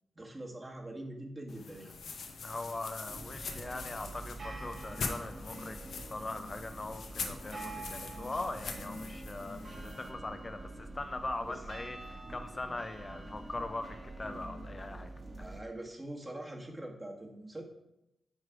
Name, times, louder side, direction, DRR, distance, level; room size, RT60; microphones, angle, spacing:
voice 1, 0.2-2.0 11.4-11.6 15.4-17.6, right 1 dB, 25° right, 0 dB, 1.8 m, -43 dB
sound 1, 1.5-10.1, left 4 dB, 75° left, 0.8 m, -43 dB
voice 2, 2.4-15.1, left 2 dB, 35° left, 8 dB, 0.5 m, -41 dB
sound 2, 3.1-15.6, right 2 dB, 50° right, 1.4 m, -46 dB
9.5 x 3.2 x 4.8 m, 0.88 s
supercardioid pair, 45°, 0 cm